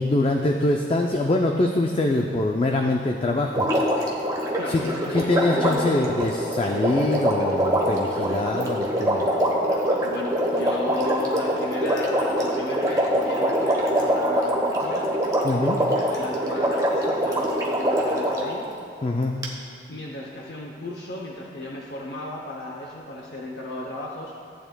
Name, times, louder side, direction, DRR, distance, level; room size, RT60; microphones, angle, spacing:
voice 1, 0.0-3.7 4.7-4.8 5.1-9.3 15.4-15.8 19.0-19.3, left 2 dB, 30° left, 2 dB, 0.4 m, -24 dB
Water, 3.5-18.5 19.4-19.5, equal, 20° right, 1.0 m, -24 dB
voice 2, 4.6-5.9 10.0-15.1 15.9-18.7 19.9-24.3, left 1 dB, 65° left, -2 dB, 0.7 m, -34 dB
14.5 x 8.9 x 2.2 m, 2.5 s
head